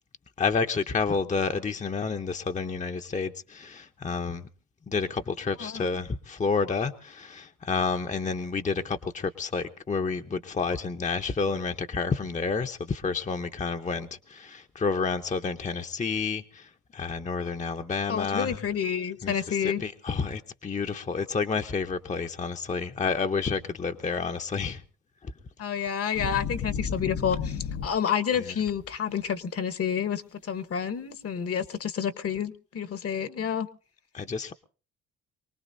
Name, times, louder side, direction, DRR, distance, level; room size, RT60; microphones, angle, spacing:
voice 1, 0.4-4.5 4.9-18.6 19.2-24.8 25.2-25.3 28.4-28.6 34.1-34.5, left 5 dB, 25° left, 0.8 m, -30 dB
voice 2, 18.1-19.8 25.6-33.7, left 8 dB, 50° left, 1.2 m, -29 dB
sound 1, 26.1-28.4 28.7-29.1, left 6 dB, 75° left, 1.0 m, -32 dB
24.0 x 19.0 x 2.7 m
cardioid pair, 90°, 30 cm